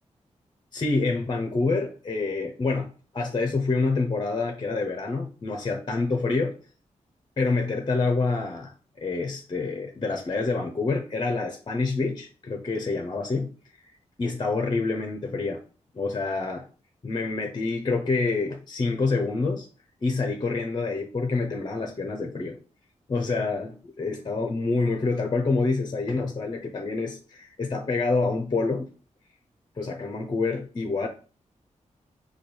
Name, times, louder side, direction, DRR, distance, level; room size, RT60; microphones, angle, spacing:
voice 1, 0.7-2.9 3.1-6.5 7.4-8.7 9.0-13.5 14.2-15.6 15.9-16.6 17.0-19.7 20.0-22.6 23.1-28.9 29.8-31.1, left 3 dB, 35° left, 3 dB, 0.6 m, -27 dB
4.9 x 2.3 x 4.4 m, 0.39 s
wide cardioid pair, 85°, 13 cm